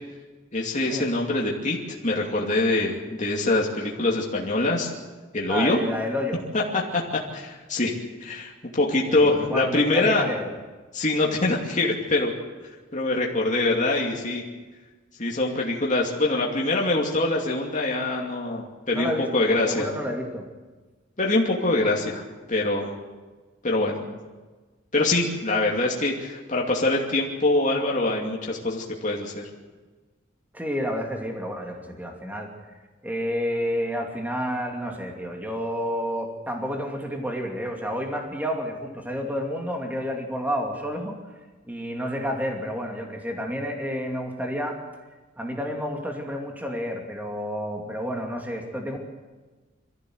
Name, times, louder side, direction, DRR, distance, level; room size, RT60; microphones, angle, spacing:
voice 1, 0.5-1.8 2.0-4.9 5.3-5.8 6.5-7.0 7.3-7.9 8.2-10.2 10.9-12.3 12.9-14.4 15.2-19.9 21.2-22.2 22.5-22.9 23.6-24.0 24.9-29.5, left 2 dB, 40° left, -2 dB, 2.6 m, -24 dB
voice 2, 5.5-6.4 9.1-10.5 18.9-20.5 30.5-32.5 33.0-41.2 41.6-44.8 45.4-49.0, equal, 10° right, 1 dB, 2.7 m, -30 dB
23.5 x 15.0 x 8.0 m, 1.3 s
head